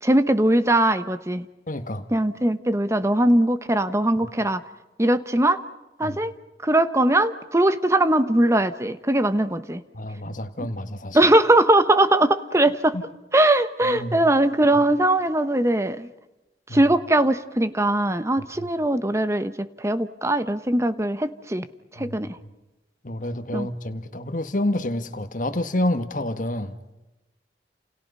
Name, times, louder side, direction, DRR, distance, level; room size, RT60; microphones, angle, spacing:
voice 1, 0.0-1.5 2.1-4.6 5.0-5.6 6.0-6.3 6.6-9.8 11.1-13.0 13.3-16.1 16.7-21.7 21.9-22.4 23.5-23.7, right 1 dB, 15° right, 12 dB, 1.1 m, -20 dB
voice 2, 1.7-2.1 4.2-4.3 6.0-6.2 9.9-11.2 12.9-13.0 13.8-14.2 14.6-14.8 16.7-16.8 22.0-22.2 23.0-26.7, left 1 dB, 45° left, 8 dB, 1.7 m, -28 dB
30.0 x 29.0 x 5.6 m, 1.0 s
head